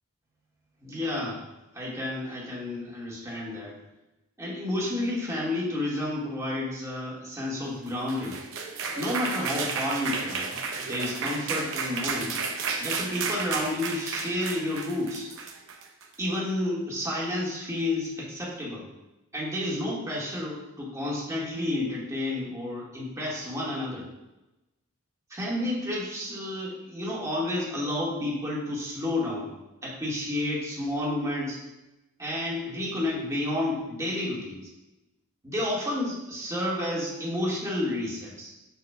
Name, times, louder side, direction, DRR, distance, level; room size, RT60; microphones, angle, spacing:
voice 1, 0.8-1.4 1.7-3.8 4.4-8.4 9.0-12.4 12.8-15.3 16.2-18.9 19.3-24.0 25.3-29.5 29.8-31.6 32.2-34.6 35.4-38.5, left 1 dB, 15° right, -6 dB, 1.8 m, -30 dB
sound 1, 7.9-16.1, right 5 dB, 60° right, 0.8 m, -32 dB
7.0 x 6.7 x 2.3 m, 0.99 s
head